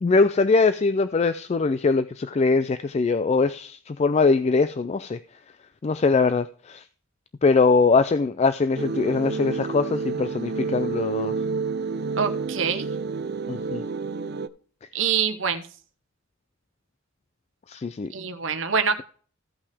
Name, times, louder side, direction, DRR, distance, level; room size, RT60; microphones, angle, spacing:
voice 1, 0.0-5.2 5.8-6.8 7.4-11.4 13.5-13.8 17.7-18.1, left 4 dB, 30° left, 13 dB, 0.3 m, -22 dB
sound 1, 8.8-14.5, right 4 dB, 50° right, 0.5 m, -29 dB
voice 2, 12.2-12.9 14.9-15.7 18.1-19.0, right 6 dB, 65° right, 9 dB, 1.0 m, -25 dB
15.0 x 5.6 x 3.4 m, 0.43 s
head